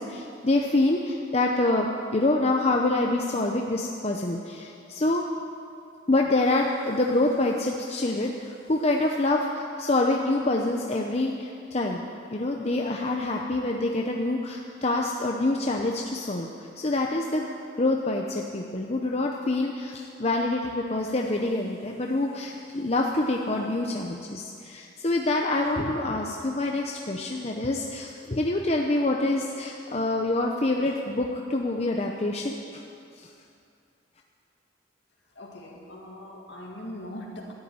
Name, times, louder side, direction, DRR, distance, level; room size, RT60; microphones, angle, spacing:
voice 1, 0.0-5.2 6.1-12.0 12.3-17.5 17.8-32.8 33.2-33.3, left 2 dB, 35° left, 1 dB, 0.8 m, -26 dB
voice 2, 35.4-37.5, left 1 dB, 65° left, 0 dB, 2.1 m, -40 dB
13.0 x 8.4 x 9.5 m, 2.5 s
head